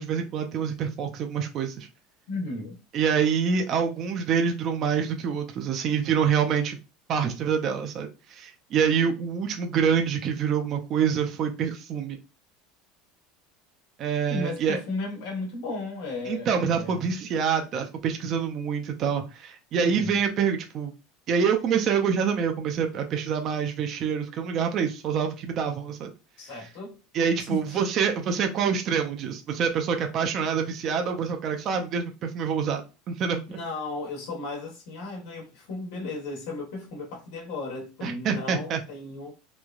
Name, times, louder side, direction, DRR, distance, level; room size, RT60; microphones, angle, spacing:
voice 1, 0.0-1.9 2.9-6.8 7.1-12.2 14.0-14.8 16.3-20.9 21.3-26.1 26.6-26.7 27.1-32.8 33.1-33.6 38.0-38.8, right 7 dB, 45° right, 0.5 m, -26 dB
voice 2, 2.3-2.7 14.3-17.0 19.8-20.2 26.4-27.0 27.5-27.8 33.5-39.3, left 2 dB, 80° left, 1.1 m, -35 dB
3.1 x 2.2 x 2.4 m
supercardioid pair, 125°, 0 cm